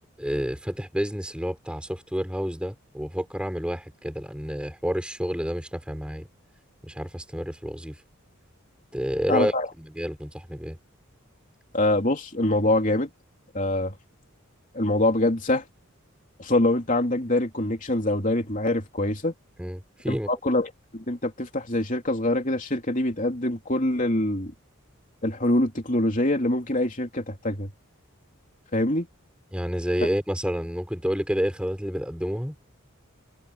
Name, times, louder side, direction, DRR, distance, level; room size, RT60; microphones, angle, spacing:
voice 1, 0.2-6.3 6.8-8.0 8.9-10.8 19.6-20.3 29.5-32.6, equal, 5° right, 3.7 m, -29 dB
voice 2, 9.3-9.7 11.7-13.1 13.5-13.9 14.7-15.6 16.4-19.3 20.1-24.5 25.2-27.7 28.7-29.1, left 1 dB, 40° left, 3.2 m, -24 dB
head